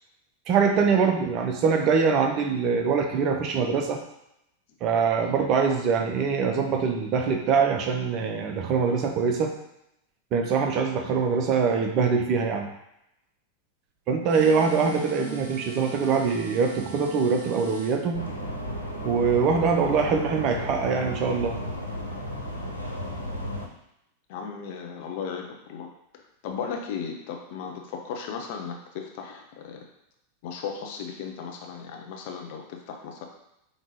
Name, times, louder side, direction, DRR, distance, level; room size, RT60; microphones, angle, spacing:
voice 1, 0.5-4.0 4.8-9.5 10.3-12.7 14.1-18.2 19.0-21.6, right 5 dB, 35° right, 3 dB, 0.6 m, -23 dB
sound 1, 14.3-18.0, right 6 dB, 60° right, 1.1 m, -42 dB
sound 2, 18.1-23.7, equal, 85° right, 0.7 m, -33 dB
voice 2, 24.3-25.9 26.4-29.8 30.4-33.2, left 6 dB, 50° left, 2 dB, 0.7 m, -36 dB
5.2 x 2.9 x 2.9 m, 0.83 s
figure-of-eight pair, 90°, 0 cm